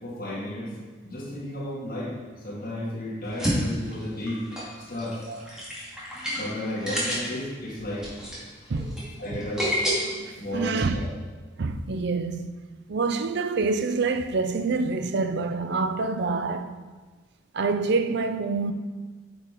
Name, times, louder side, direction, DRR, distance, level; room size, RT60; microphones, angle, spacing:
voice 1, 0.0-0.8 1.0-2.2 2.4-4.5 4.9-5.2 6.4-8.1 9.2-9.7 10.4-11.1, left 1 dB, 45° left, 1.9 m, -33 dB
sound 1, 3.2-9.9, equal, 5° right, 2.0 m, -30 dB
voice 2, 10.0-11.0 11.6-12.5 12.9-16.8 17.5-18.7, right 4 dB, 55° right, 0.5 m, -27 dB
8.7 x 5.3 x 4.5 m
head